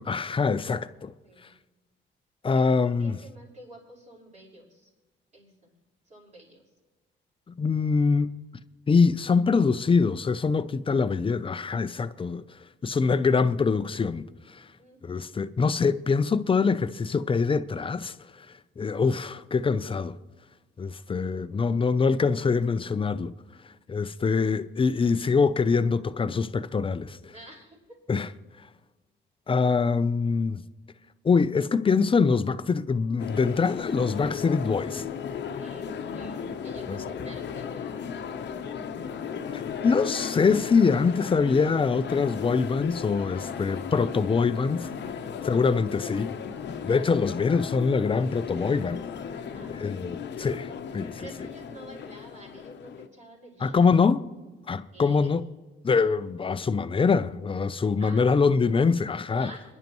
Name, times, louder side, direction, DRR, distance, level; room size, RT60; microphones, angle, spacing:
voice 1, 0.0-1.1 2.4-3.2 7.6-8.3 8.9-12.4 12.8-14.7 15.0-20.2 20.8-23.3 23.9-27.3 28.1-28.3 29.5-30.6 31.2-35.0 36.9-37.0 39.5-44.9 45.4-46.3 46.8-49.0 49.7-51.2 53.6-54.2 54.7-55.4 55.8-59.5, left 5 dB, 25° left, 0.6 m, -24 dB
voice 2, 2.5-4.9 5.3-5.7 6.1-6.6 10.9-11.0 14.8-15.2 27.3-28.0 35.5-38.1 45.2-45.5 49.5-50.0 51.2-53.8 54.9-55.3 58.0-58.5 59.3-59.6, right 1 dB, 35° right, 5.5 m, -49 dB
sound 1, 33.2-53.1, left 7 dB, 60° left, 0.9 m, -36 dB
26.0 x 11.0 x 3.1 m
cardioid pair, 90°, 20 cm